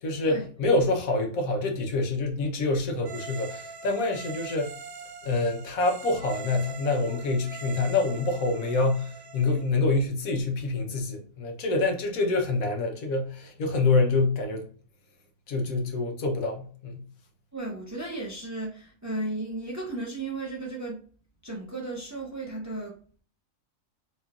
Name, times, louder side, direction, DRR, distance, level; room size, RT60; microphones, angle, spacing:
voice 1, 0.0-4.7 5.2-14.6 15.5-17.0, left 3 dB, 90° left, 1.3 m, -26 dB
sound 1, 3.0-9.7, right 4 dB, 90° right, 1.1 m, -42 dB
voice 2, 17.5-21.1 21.4-22.9, right 2 dB, 20° right, 0.5 m, -34 dB
4.1 x 3.0 x 2.3 m
omnidirectional pair, 1.4 m